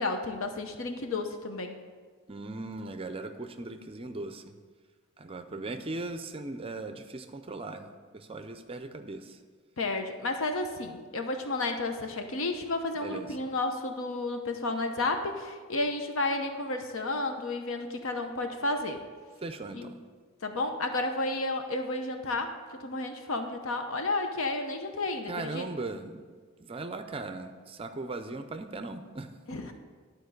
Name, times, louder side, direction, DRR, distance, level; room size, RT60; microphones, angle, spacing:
voice 1, 0.0-1.8 9.8-19.0 19.7-19.9 20.4-25.7 29.5-29.7, left 2 dB, 75° left, 6 dB, 0.8 m, -32 dB
voice 2, 2.3-4.4 5.2-9.4 13.0-13.3 19.4-19.9 25.3-26.2 26.6-29.3, right 2 dB, 25° right, 8 dB, 0.5 m, -38 dB
12.0 x 4.5 x 6.5 m, 1.5 s
head